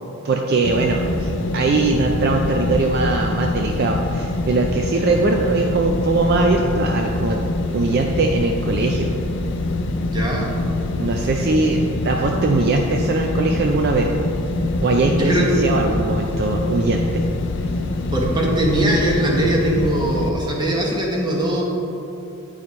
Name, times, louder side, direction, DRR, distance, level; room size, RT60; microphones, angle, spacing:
voice 1, 0.2-7.4 7.7-9.1 11.0-14.1 14.8-17.2, right 3 dB, 45° right, 2 dB, 0.4 m, -21 dB
sound 1, 0.6-20.3, left 2 dB, 55° left, 0.4 m, -24 dB
voice 2, 10.1-10.5 15.1-15.5 18.1-21.6, right 1 dB, 20° right, -2 dB, 1.0 m, -21 dB
9.3 x 4.9 x 4.2 m, 2.9 s
head